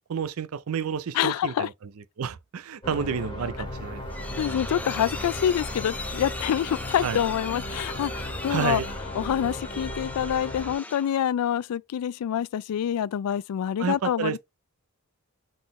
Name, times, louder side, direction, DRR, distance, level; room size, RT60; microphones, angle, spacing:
voice 1, 0.1-1.7 2.2-4.0 4.3-4.4 7.0-7.2 8.5-8.9 13.8-14.4, right 6 dB, 65° right, 0.4 m, -30 dB
voice 2, 1.1-1.7 4.4-8.8 9.2-14.4, left 9 dB, 80° left, 0.3 m, -26 dB
sound 1, 2.8-10.8, left 1 dB, 25° left, 1.9 m, -36 dB
sound 2, 3.7-11.2, left 2 dB, 5° left, 0.5 m, -39 dB
3.9 x 3.8 x 3.1 m
head